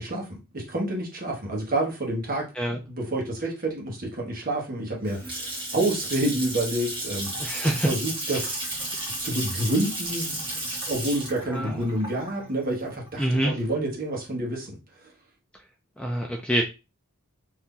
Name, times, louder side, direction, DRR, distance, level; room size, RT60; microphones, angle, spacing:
voice 1, 0.0-2.5 2.9-7.5 7.9-8.6 9.2-14.7, right 1 dB, 45° right, -1 dB, 1.1 m, -28 dB
Water tap faucet / Sink (filling or washing) / Splash splatter, 4.8-13.7, right 1 dB, 25° right, 1.2 m, -33 dB
voice 2, 7.4-7.9 11.5-11.9 13.2-13.5 16.0-16.6, equal, 5° left, 1 dB, 0.3 m, -25 dB
2.8 x 2.6 x 3.6 m, 0.28 s
head